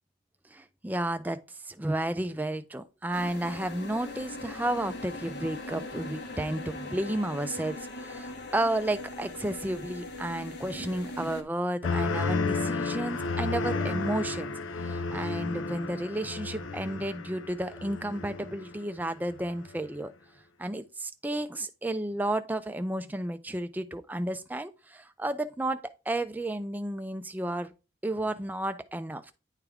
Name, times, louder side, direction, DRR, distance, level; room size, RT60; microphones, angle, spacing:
voice 1, 0.5-14.5 14.8-20.1 20.6-27.7 28.0-29.3, right 1 dB, 10° right, 0.4 m, -32 dB
sound 1, 3.1-11.4, left 2 dB, 50° left, 0.9 m, -40 dB
sound 2, 11.8-18.9 19.3-19.8, left 4 dB, 70° left, 0.5 m, -32 dB
9.8 x 3.5 x 3.5 m
head